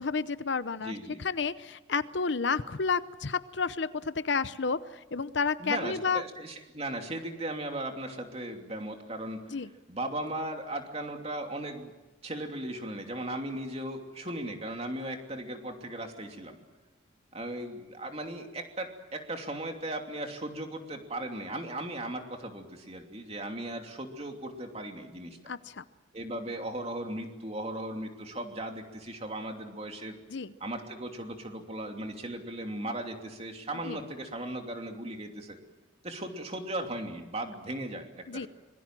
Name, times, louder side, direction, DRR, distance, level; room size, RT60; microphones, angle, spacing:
voice 1, 0.0-0.9 1.2-6.2 9.5-9.7 25.5-25.8 30.3-30.5 33.8-34.0 38.3-38.5, left 5 dB, 60° left, 14 dB, 0.8 m, -31 dB
voice 2, 0.8-1.2 5.6-9.6 9.9-11.9 12.2-16.6 17.3-25.5 26.1-30.2 30.6-35.6 36.0-38.5, right 1 dB, 30° right, 4 dB, 2.8 m, -37 dB
26.0 x 22.0 x 7.6 m, 1.1 s
head